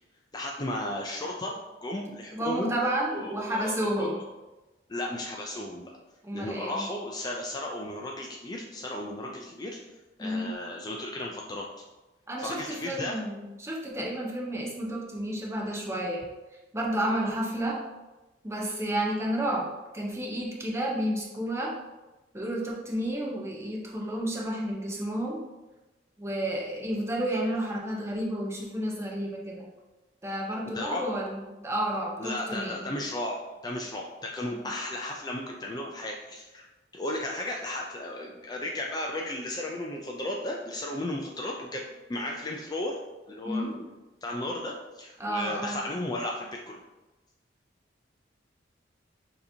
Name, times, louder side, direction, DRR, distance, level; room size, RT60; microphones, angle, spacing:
voice 1, 0.3-2.7 3.1-4.2 4.9-5.9 6.3-9.8 10.2-11.7 12.4-13.2 30.7-31.0 32.2-33.4 33.6-36.7 36.9-43.0 43.3-43.9 44.2-46.8, left 1 dB, 20° left, -1 dB, 0.3 m, -34 dB
voice 2, 2.3-4.2 6.2-6.9 10.2-10.5 12.3-16.2 16.7-17.8 18.4-19.7 19.9-21.7 22.3-25.4 26.2-29.7 30.2-32.9 34.5-34.7 43.4-43.8 45.2-45.8, right 1 dB, 15° right, -2 dB, 0.7 m, -31 dB
6.4 x 2.9 x 2.7 m, 1.1 s
head